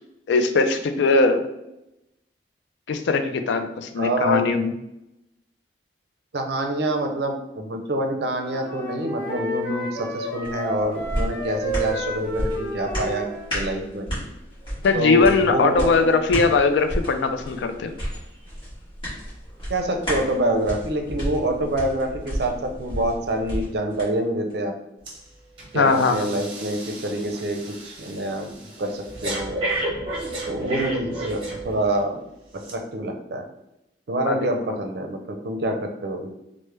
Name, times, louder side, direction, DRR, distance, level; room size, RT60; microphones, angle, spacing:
voice 1, 0.3-1.5 2.9-4.7 14.8-17.9 25.7-26.3 30.7-30.9 34.3-34.4, left 4 dB, 80° left, 8 dB, 0.3 m, -20 dB
voice 2, 4.0-4.4 6.3-13.3 13.5-14.1 14.9-16.2 19.7-24.7 25.7-29.6 30.5-32.2 32.7-33.4 34.1-36.3, right 1 dB, 65° right, 4 dB, 0.5 m, -26 dB
Wind instrument woodwind instrument, 8.3-13.5, right 1 dB, 55° left, 0.7 m, -31 dB
sound 1, 10.4-24.1 24.5-24.6, equal, 30° left, 1.2 m, -32 dB
Breathing, 25.1-25.2 25.6-32.0 32.6-32.7, right 2 dB, 30° right, 0.7 m, -32 dB
3.1 x 2.0 x 3.3 m, 0.89 s
head